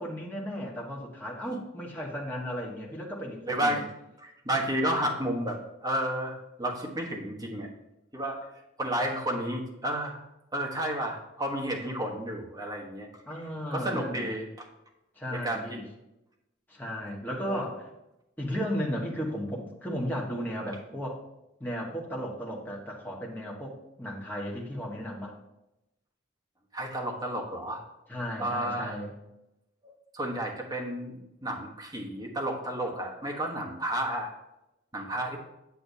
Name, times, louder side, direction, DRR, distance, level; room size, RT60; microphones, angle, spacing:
voice 1, 0.0-3.8 13.3-14.3 15.2-15.8 16.7-17.9 18.4-21.2 21.6-25.3 28.1-29.1, equal, 10° left, -3 dB, 1.4 m, -35 dB
voice 2, 3.5-3.8 4.2-7.7 8.1-8.5 8.8-10.2 10.5-13.1 13.7-14.7 15.3-15.6 17.5-17.6 26.7-27.8 28.4-29.0 29.8-34.3 34.9-35.4, right 1 dB, 20° right, 0 dB, 1.2 m, -31 dB
8.1 x 7.7 x 2.8 m, 0.90 s
head